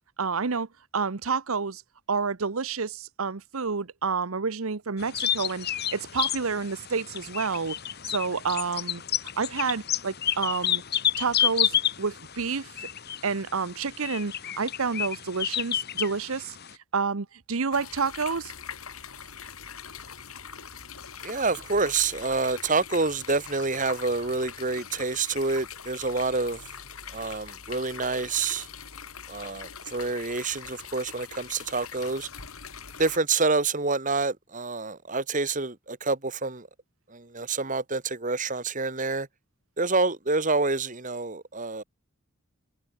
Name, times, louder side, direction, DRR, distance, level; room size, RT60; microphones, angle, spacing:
voice 1, 0.2-0.7 0.9-1.8 2.1-7.8 8.0-9.0 9.4-10.8 11.2-12.9 13.2-16.6 16.9-18.5, right 5 dB, 80° right, 1.0 m, -29 dB
sound 1, 5.0-16.7, left 10 dB, 50° left, 2.7 m, -30 dB
sound 2, 17.7-33.2, left 7 dB, 90° left, 4.3 m, -42 dB
voice 2, 21.2-26.6 27.1-28.7 29.3-32.3 33.0-36.7 37.1-39.3 39.8-41.8, right 3 dB, 40° right, 2.3 m, -27 dB
head